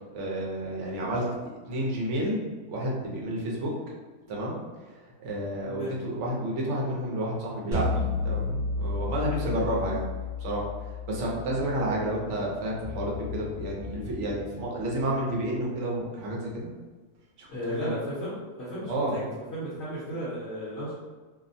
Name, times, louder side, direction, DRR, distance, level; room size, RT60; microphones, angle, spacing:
voice 1, 0.1-1.2 1.7-3.7 4.3-4.6 5.2-10.0 10.4-10.6 11.1-16.7 17.4-17.5 17.8-17.9 18.8-19.2, right 1 dB, 60° right, -3 dB, 0.8 m, -30 dB
voice 2, 5.6-5.9 17.5-20.9, equal, 55° left, -9 dB, 0.9 m, -35 dB
sound 1, 7.7-12.8, left 3 dB, 35° right, 1.1 m, -32 dB
sound 2, 12.8-16.2, left 7 dB, 10° right, 0.9 m, -41 dB
2.7 x 2.1 x 2.6 m, 1.3 s
omnidirectional pair, 1.6 m